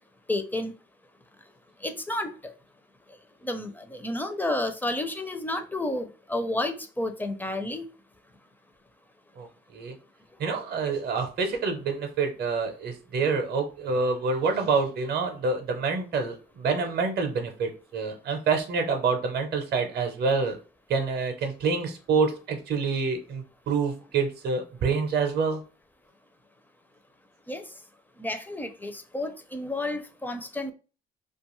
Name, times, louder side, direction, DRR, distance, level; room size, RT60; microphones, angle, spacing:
voice 1, 0.3-0.7 1.8-2.5 3.4-7.9 27.5-27.6 28.2-30.7, left 1 dB, 10° left, 0.4 m, -31 dB
voice 2, 9.4-9.9 10.4-20.6 20.9-25.6, right 4 dB, 55° right, 0.6 m, -27 dB
2.5 x 2.3 x 3.0 m
cardioid pair, 90°, 20 cm